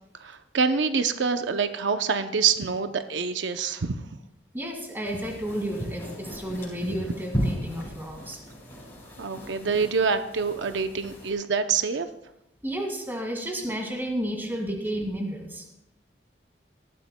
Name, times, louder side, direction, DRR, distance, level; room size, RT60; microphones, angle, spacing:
voice 1, 0.2-4.0 9.2-12.1, right 5 dB, 90° right, 8 dB, 0.6 m, -26 dB
voice 2, 4.5-8.4 12.6-15.7, right 1 dB, 10° right, 2 dB, 2.0 m, -32 dB
sound 1, 5.0-11.3, equal, 15° left, 5.6 m, -35 dB
18.5 x 13.5 x 2.2 m, 0.85 s
head